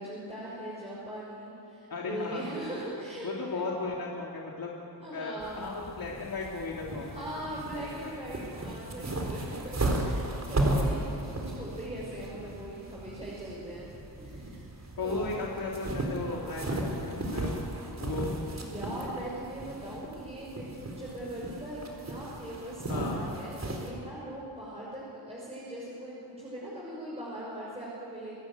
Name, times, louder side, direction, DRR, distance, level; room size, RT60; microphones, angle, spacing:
voice 1, 0.0-3.7 5.0-5.7 7.1-13.9 14.2-14.7 14.9-15.4 18.5-28.3, right 1 dB, 15° right, -6 dB, 5.9 m, -40 dB
voice 2, 1.9-2.4 3.2-4.7 5.1-8.4 10.9-11.1 15.0-17.5 18.0-18.3 22.9-23.2, left 3 dB, 55° left, -3 dB, 2.7 m, -36 dB
sound 1, 5.4-23.9, right 1 dB, 40° right, 4.2 m, -35 dB
26.0 x 15.0 x 9.5 m, 2.7 s
wide cardioid pair, 105°, 43 cm